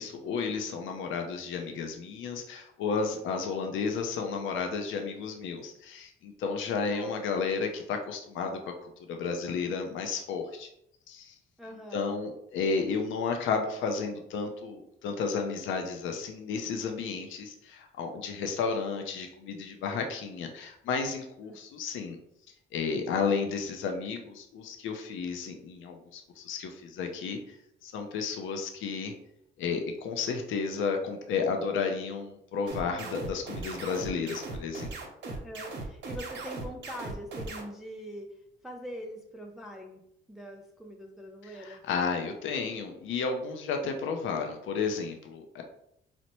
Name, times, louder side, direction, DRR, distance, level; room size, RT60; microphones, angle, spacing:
voice 1, 0.0-10.7 11.1-11.3 11.9-22.2 22.7-27.6 27.8-29.1 29.6-35.0 41.4-45.6, left 5 dB, 80° left, 4 dB, 0.5 m, -32 dB
voice 2, 11.6-12.1 21.5-21.6 35.2-40.0 40.3-41.9, equal, ahead, 2 dB, 0.3 m, -43 dB
sound 1, 32.7-37.6, right 3 dB, 65° right, 0.8 m, -38 dB
4.1 x 2.1 x 2.9 m, 0.76 s
cardioid pair, 90°, 20 cm